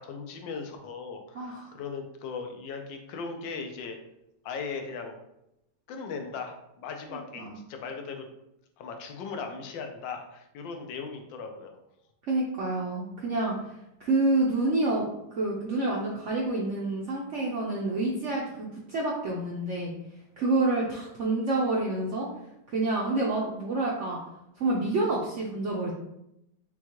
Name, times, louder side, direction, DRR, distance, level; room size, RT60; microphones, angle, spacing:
voice 1, 0.0-4.0 4.4-5.2 5.9-8.3 8.8-11.8, left 5 dB, 85° left, 4 dB, 1.4 m, -38 dB
voice 2, 1.3-1.7 7.1-7.6 12.3-13.5 14.0-15.1 15.3-19.9 20.4-22.3 22.7-24.2 24.6-25.9, right 2 dB, 70° right, -3 dB, 0.7 m, -28 dB
6.2 x 2.3 x 2.9 m, 0.84 s
omnidirectional pair, 2.0 m